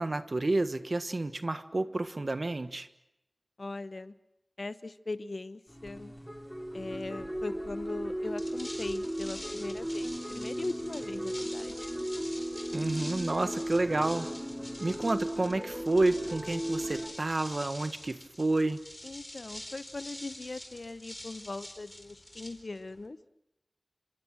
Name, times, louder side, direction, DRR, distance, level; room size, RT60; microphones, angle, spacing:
voice 1, 0.0-2.9 12.7-14.3 14.8-18.8, right 2 dB, 75° right, 10 dB, 1.4 m, -30 dB
voice 2, 3.6-4.1 4.6-6.1 6.7-11.9 19.0-23.2, left 2 dB, 80° left, 13 dB, 1.0 m, -40 dB
sound 1, 5.7-17.1, right 1 dB, 5° right, 4.6 m, -36 dB
sound 2, 8.2-23.1, left 1 dB, 30° left, 4.1 m, -46 dB
29.5 x 26.0 x 6.2 m, 0.87 s
wide cardioid pair, 40°, 0 cm